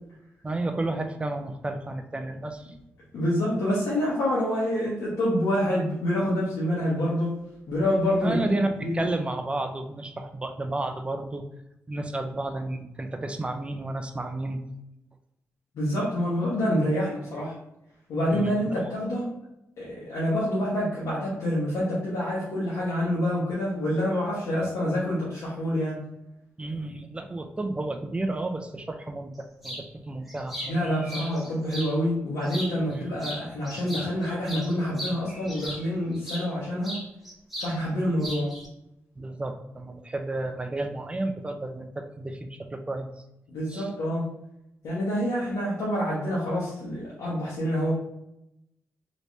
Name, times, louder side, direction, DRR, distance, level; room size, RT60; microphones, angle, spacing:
voice 1, 0.4-2.7 8.2-11.4 11.9-14.6 18.3-18.9 26.6-30.9 32.9-33.2 39.2-43.1 43.7-43.9, right 2 dB, 20° right, 6 dB, 0.4 m, -32 dB
voice 2, 3.1-7.3 7.7-9.0 15.7-17.5 18.1-19.3 19.8-26.0 30.7-37.0 37.6-38.5 43.5-44.2 44.8-47.9, equal, 85° left, -7 dB, 1.0 m, -27 dB
sound 1, 29.6-29.9 30.3-31.9 32.4-33.0 33.2-36.5 36.8-37.8 38.0-38.7, equal, 5° right, 0.9 m, -37 dB
3.2 x 3.1 x 2.6 m, 0.84 s
cardioid pair, 80°, 5 cm